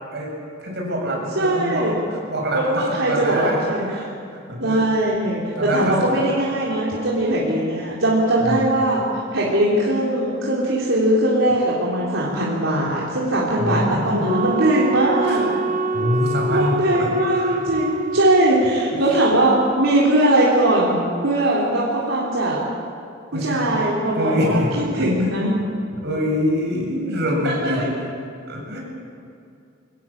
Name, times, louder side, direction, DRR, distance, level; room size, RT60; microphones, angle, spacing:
voice 1, 0.6-4.8 5.6-6.3 8.4-8.8 13.6-14.3 15.3-15.4 15.9-17.6 18.9-19.0 23.3-23.7 24.1-25.3 26.0-27.8 28.5-28.8, equal, 60° right, 0 dB, 7.1 m, -25 dB
voice 2, 1.4-1.9 2.5-3.8 4.6-9.0 9.3-15.5 16.5-21.0 21.2-22.6 23.4-24.6 25.0-25.5 27.4-27.9, right 1 dB, 80° right, -6 dB, 4.0 m, -20 dB
Wind instrument woodwind instrument, 14.2-18.5, right 2 dB, 40° right, 0.8 m, -26 dB
23.5 x 18.5 x 8.7 m, 2.5 s
head